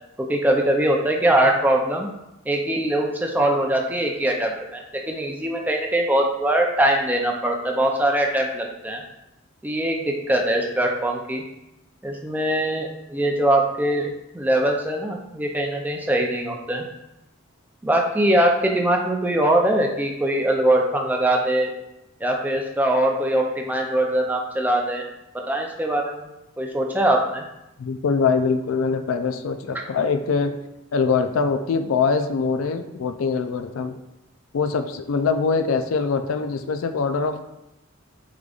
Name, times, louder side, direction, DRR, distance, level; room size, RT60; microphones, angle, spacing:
voice 1, 0.2-2.1 2.5-9.0 9.6-11.4 12.0-16.8 17.8-21.7 22.2-25.0 25.5-26.3 26.6-27.4, right 1 dB, 10° right, 1 dB, 0.4 m, -22 dB
voice 2, 27.8-30.6 30.9-34.0 34.5-37.4, left 5 dB, 80° left, 8 dB, 0.4 m, -23 dB
4.9 x 3.7 x 2.4 m, 0.89 s
head